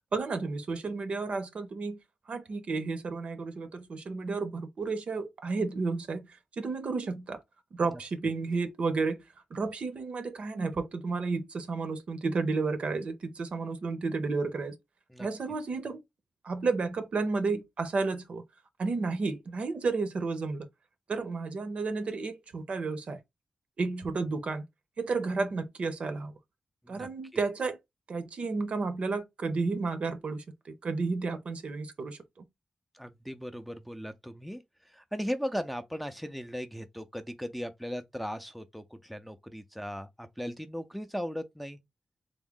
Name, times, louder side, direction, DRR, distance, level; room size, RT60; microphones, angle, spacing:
voice 1, 0.1-2.0 2.3-7.4 7.7-9.2 9.5-14.7 15.2-16.0 16.4-18.4 18.8-20.7 21.1-23.2 23.8-24.6 25.0-26.3 26.9-27.8 28.1-32.4, right 4 dB, 65° right, 0.7 m, -32 dB
voice 2, 26.9-27.4 32.9-41.8, equal, ahead, 0.4 m, -38 dB
3.5 x 2.1 x 3.6 m
wide cardioid pair, 100°, 2 cm